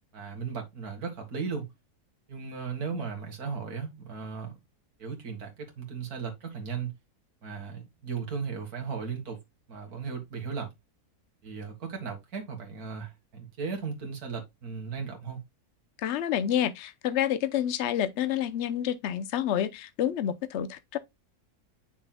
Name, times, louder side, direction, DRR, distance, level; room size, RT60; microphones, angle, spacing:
voice 1, 0.1-1.7 2.3-4.5 5.0-6.9 7.4-9.4 9.7-10.7 11.4-15.4, right 5 dB, 75° right, 2.1 m, -36 dB
voice 2, 16.0-21.0, left 10 dB, 55° left, 0.9 m, -28 dB
7.5 x 6.2 x 2.2 m
omnidirectional pair, 1.6 m